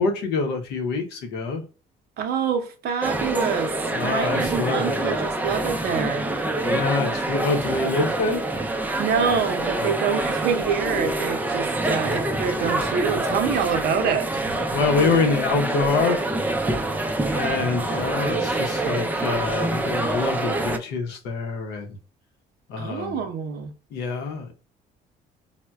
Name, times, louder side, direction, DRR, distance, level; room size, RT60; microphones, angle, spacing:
voice 1, 0.0-1.6 3.9-5.2 6.6-8.5 9.8-10.0 11.9-12.2 14.7-16.2 17.3-22.0 22.7-23.2 23.9-24.5, left 4 dB, 85° left, 0.8 m, -26 dB
voice 2, 2.2-3.7 4.0-6.3 9.0-14.4 22.8-23.7, right 6 dB, 70° right, 0.6 m, -26 dB
sound 1, 3.0-20.8, right 2 dB, 10° right, 0.4 m, -26 dB
4.2 x 2.1 x 2.2 m
cardioid pair, 110°, 17 cm